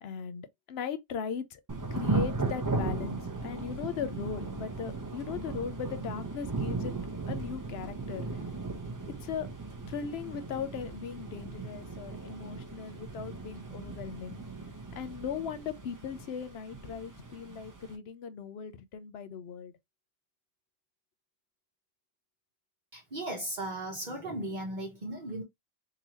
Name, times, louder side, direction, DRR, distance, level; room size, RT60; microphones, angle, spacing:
voice 1, 0.0-1.6 1.9-6.9 7.3-8.4 9.2-9.5 9.9-14.4 15.0-19.7, left 7 dB, 80° left, 0.9 m, -38 dB
Thunder / Rain, 1.7-17.9, right 3 dB, 20° right, 0.6 m, -37 dB
voice 2, 22.9-25.4, right 1 dB, 50° right, 1.1 m, -36 dB
3.8 x 2.8 x 2.8 m
omnidirectional pair, 1.1 m